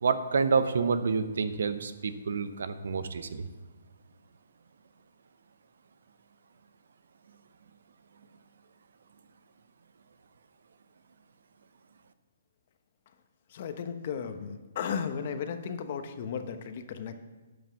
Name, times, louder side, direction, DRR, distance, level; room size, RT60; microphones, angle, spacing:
voice 1, 0.0-3.5, right 5 dB, 70° right, 11 dB, 0.8 m, -28 dB
voice 2, 13.5-17.1, left 7 dB, 45° left, 9 dB, 0.9 m, -35 dB
11.0 x 5.4 x 7.1 m, 1.2 s
hypercardioid pair, 155°, 0 cm